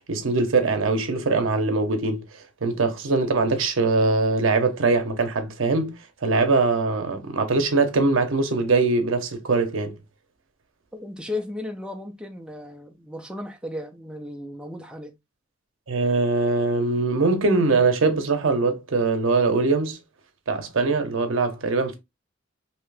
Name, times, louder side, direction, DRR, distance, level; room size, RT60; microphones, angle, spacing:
voice 1, 0.0-2.2 2.6-5.9 6.2-10.0 15.9-20.0 20.5-22.0, right 3 dB, 70° right, 0.7 m, -22 dB
voice 2, 10.9-15.1, left 2 dB, 5° right, 0.5 m, -35 dB
2.8 x 2.5 x 3.2 m
head